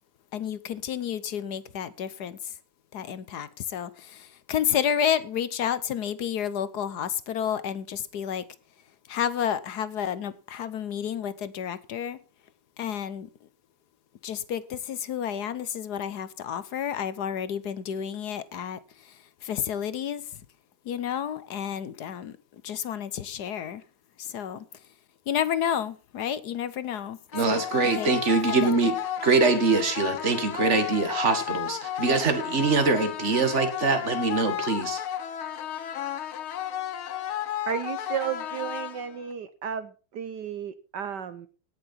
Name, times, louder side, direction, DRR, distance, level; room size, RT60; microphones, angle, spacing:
voice 1, 0.3-2.5 2.9-8.5 9.1-12.2 12.8-13.3 14.2-20.4 20.8-23.8 24.2-24.7 25.3-27.2 27.5-27.6 27.9-28.1 28.5-28.7, left 9 dB, 60° left, 1.2 m, -31 dB
sound 1, 27.3-39.3, left 11 dB, 90° left, 1.9 m, -33 dB
voice 2, 27.3-29.0 29.2-35.0, right 4 dB, 35° right, 2.2 m, -23 dB
voice 3, 37.7-41.5, right 8 dB, 65° right, 1.4 m, -33 dB
18.0 x 6.9 x 5.7 m
omnidirectional pair, 2.2 m